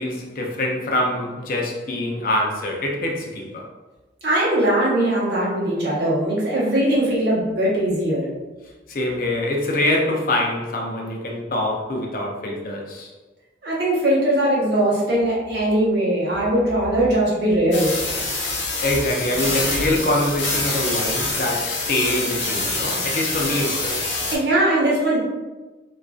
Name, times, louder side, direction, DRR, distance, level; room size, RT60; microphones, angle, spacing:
voice 1, 0.0-3.7 8.9-13.1 18.5-24.1, left 1 dB, 50° left, 0 dB, 0.4 m, -24 dB
voice 2, 4.2-8.3 13.6-17.9 24.3-25.2, right 1 dB, 65° right, -6 dB, 0.8 m, -20 dB
sound 1, 17.7-24.4, left 2 dB, 90° left, 0.6 m, -25 dB
2.5 x 2.2 x 2.3 m, 1.2 s
head